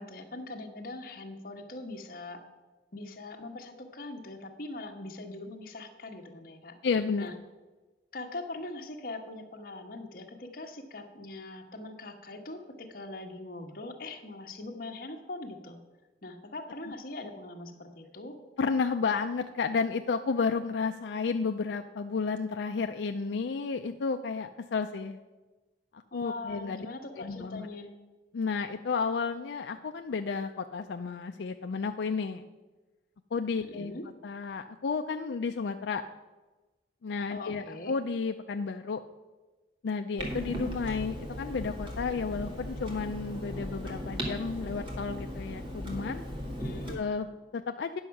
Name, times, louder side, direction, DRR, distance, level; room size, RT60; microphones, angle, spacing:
voice 1, 0.0-2.4 2.9-6.8 7.2-7.3 8.1-15.8 16.2-18.4 26.1-28.0 33.6-34.0 37.3-37.9 46.6-47.0, left 2 dB, 55° left, 4 dB, 1.1 m, -42 dB
voice 2, 6.8-7.3 18.6-25.2 25.9-26.9 27.2-27.7 28.3-32.4 33.3-33.9 34.2-36.0 37.0-39.0 39.8-46.2 46.9-48.0, left 5 dB, 85° left, 6 dB, 0.4 m, -32 dB
Clock, 40.2-46.9, equal, 30° right, 1.8 m, -37 dB
9.8 x 6.3 x 5.8 m, 1.2 s
head